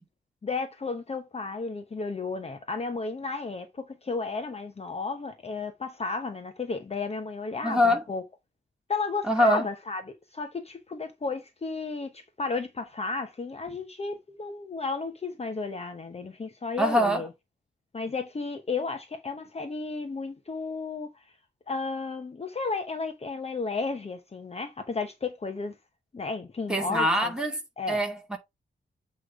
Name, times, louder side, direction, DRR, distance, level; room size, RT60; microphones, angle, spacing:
voice 1, 0.4-8.2 8.9-10.0 10.3-17.3 17.9-21.2 21.7-25.8 26.1-27.3 27.8-28.0, left 4 dB, 30° left, 0.9 m, -33 dB
voice 2, 7.6-8.0 9.2-9.7 16.8-17.3 26.7-27.6 27.9-28.4, equal, 5° right, 2.2 m, -24 dB
8.2 x 3.2 x 4.9 m
wide cardioid pair, 135°, 20 cm